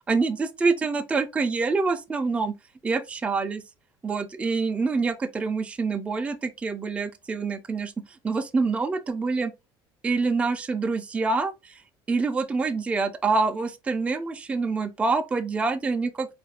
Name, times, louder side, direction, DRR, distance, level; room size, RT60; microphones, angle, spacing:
voice 1, 0.1-2.5 2.8-3.6 4.0-7.9 8.2-9.5 10.0-11.8 12.1-16.4, right 4 dB, 10° right, 0.3 m, -26 dB
4.3 x 2.4 x 2.8 m
cardioid pair, 145°, 10 cm